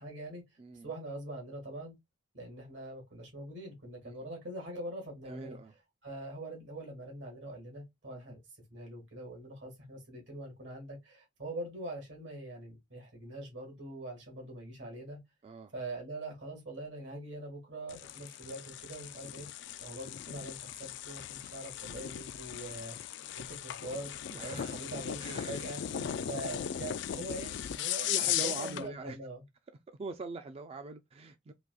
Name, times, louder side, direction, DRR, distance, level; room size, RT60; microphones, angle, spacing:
voice 1, 0.0-0.4 0.8-2.0 2.3-5.6 6.0-8.4 8.7-15.2 15.7-19.5 19.8-23.0 23.4-24.1 24.4-25.8 26.3-28.1 28.4-29.4, right 1 dB, 85° right, 1.8 m, -43 dB
voice 2, 0.6-0.9 4.0-4.2 5.3-5.7 15.4-15.7 23.2-23.4 24.3-24.7 25.2-26.4 28.0-29.2 29.9-31.5, right 3 dB, 35° right, 0.3 m, -43 dB
sound 1, 17.9-28.9, left 10 dB, 70° left, 0.3 m, -38 dB
3.9 x 2.7 x 2.3 m
head